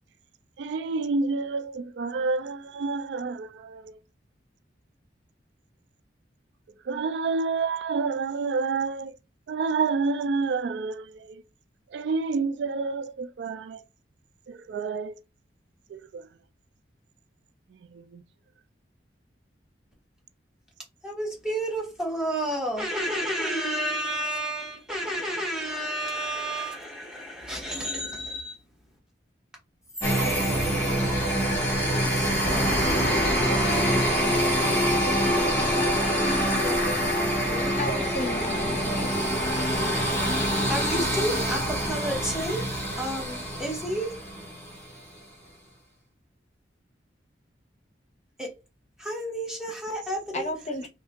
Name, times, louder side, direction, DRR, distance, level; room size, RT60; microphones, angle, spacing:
voice 1, 0.6-4.0 6.8-9.2 9.5-11.4 11.9-13.8 14.5-15.2 15.9-16.3 17.9-18.2 50.8-50.9, right 4 dB, 75° right, 0.3 m, -29 dB
voice 2, 21.0-28.6 30.4-30.5 32.4-35.3 36.2-38.1 40.7-42.6 43.0-44.1 48.4-48.5 49.0-50.5, right 1 dB, 5° right, 1.0 m, -31 dB
sound 1, 30.0-44.8, equal, 15° left, 1.5 m, -25 dB
voice 3, 37.8-39.5 50.3-50.9, left 1 dB, 40° left, 0.7 m, -34 dB
2.7 x 2.7 x 3.3 m
head